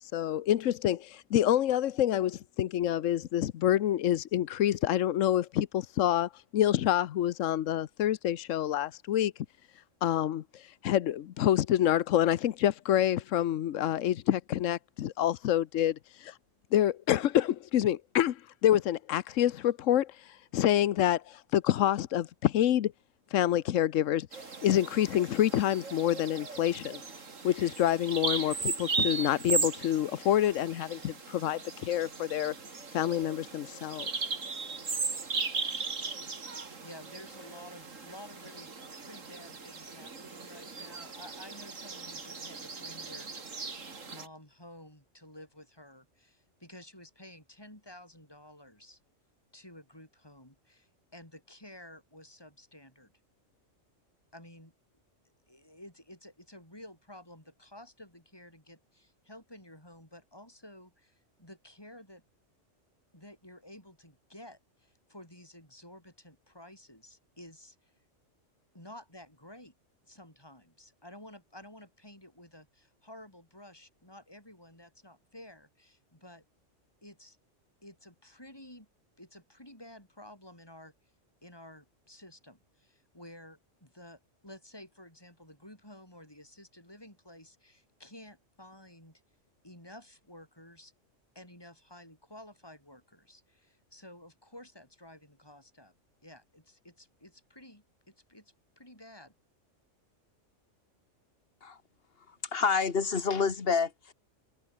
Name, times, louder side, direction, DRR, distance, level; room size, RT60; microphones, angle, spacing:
voice 1, 0.0-9.3 10.0-16.4 16.7-22.9 23.3-27.0 27.4-32.5 32.9-34.1, left 11 dB, 85° left, 1.1 m, -27 dB
Bird vocalization bird call bird song, 24.3-44.3, right 4 dB, 85° right, 2.8 m, -37 dB
voice 2, 36.8-38.7 39.0-43.6 44.1-49.0 49.5-53.1 54.3-54.7 55.5-62.2 63.1-68.0 68.7-69.7 70.0-76.4 77.0-77.4 77.8-78.9 79.2-81.1 81.4-89.2 89.6-90.9 91.3-95.9 96.2-99.3, left 1 dB, 20° left, 7.9 m, -52 dB
voice 3, 102.3-104.1, left 5 dB, 50° left, 1.8 m, -28 dB
omnidirectional pair, 1.3 m